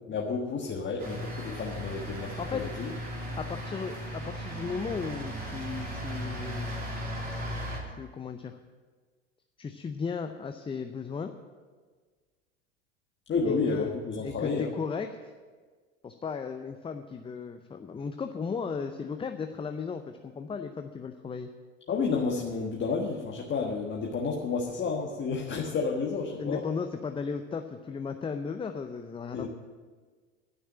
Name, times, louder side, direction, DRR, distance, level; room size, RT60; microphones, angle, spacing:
voice 1, 0.1-2.9 13.3-14.7 21.9-26.6 29.3-29.5, left 4 dB, 30° left, 0 dB, 1.5 m, -31 dB
sound 1, 1.0-7.8, equal, 25° right, 3.2 m, -36 dB
voice 2, 3.4-6.7 8.0-8.6 9.6-11.3 13.4-14.0 14.2-15.1 16.0-21.5 26.3-29.5, left 5 dB, 15° left, 7 dB, 0.6 m, -35 dB
12.0 x 6.7 x 8.6 m, 1.5 s
figure-of-eight pair, 75°, 38 cm